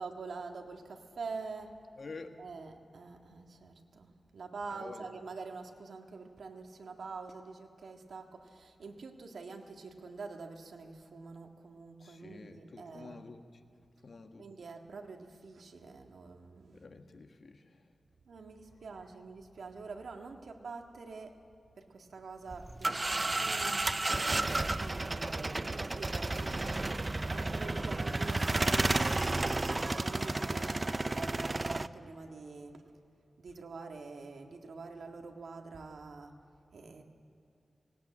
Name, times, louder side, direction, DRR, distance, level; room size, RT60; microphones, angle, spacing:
voice 1, 0.0-1.8 2.4-13.2 14.4-16.8 18.3-21.4 21.8-24.1 24.8-26.8 27.2-32.8 33.4-36.4 36.7-37.0, right 4 dB, 80° right, 3 dB, 1.7 m, -46 dB
voice 2, 2.0-2.4 4.7-5.1 12.0-13.4 14.0-14.5 16.7-17.8, left 4 dB, 55° left, 6 dB, 1.4 m, -49 dB
sound 1, 22.5-31.9, right 2 dB, 25° right, 0.5 m, -32 dB
18.5 x 17.5 x 8.6 m, 2.6 s
wide cardioid pair, 105°, 0 cm